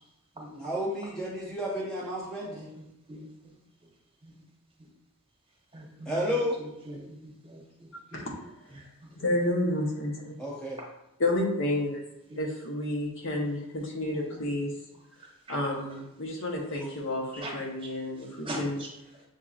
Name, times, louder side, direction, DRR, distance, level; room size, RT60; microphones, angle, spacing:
voice 1, 0.6-2.5 6.1-6.6 10.4-10.8, equal, 5° left, -6 dB, 0.6 m, -31 dB
voice 2, 2.4-3.5 4.2-4.4 4.8-4.9 5.7-8.2 8.7-8.9 12.3-12.4 14.1-14.5 15.9-16.0 16.8-16.9 17.3-17.6 18.4-18.9, right 1 dB, 25° right, -2 dB, 1.0 m, -42 dB
voice 3, 9.2-10.3 11.2-12.0 12.4-14.7 15.5-18.8, left 1 dB, 60° left, -1 dB, 1.0 m, -30 dB
7.1 x 2.8 x 2.4 m, 0.89 s
head